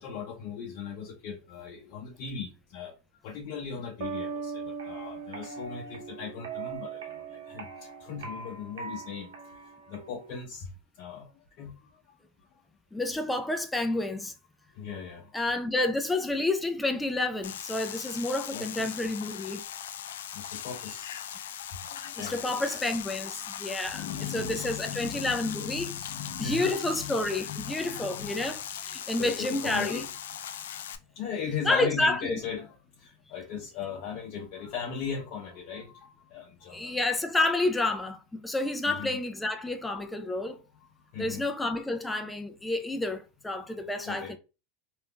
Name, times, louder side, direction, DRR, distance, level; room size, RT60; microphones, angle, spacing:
voice 1, 0.0-2.9 3.2-9.3 9.9-10.7 11.0-11.3 11.6-11.8 14.7-15.3 18.5-18.9 19.6-20.0 20.3-21.2 21.6-22.9 23.3-23.4 23.7-28.5 28.9-30.4 31.2-36.9 38.9-39.1 40.5-40.9 41.1-41.5 44.0-44.4, left 6 dB, 55° left, 0.7 m, -39 dB
sound 1, 4.0-6.8, right 5 dB, 55° right, 0.9 m, -38 dB
sound 2, 4.8-10.4, right 5 dB, 85° right, 0.8 m, -42 dB
voice 2, 12.9-14.3 15.3-19.6 22.2-24.0 24.3-26.0 26.4-30.0 31.7-32.4 36.7-40.6 41.2-44.4, left 2 dB, 10° left, 0.5 m, -29 dB
sound 3, 17.4-31.0, left 9 dB, 80° left, 0.3 m, -39 dB
3.5 x 2.6 x 2.3 m
hypercardioid pair, 110°, 0 cm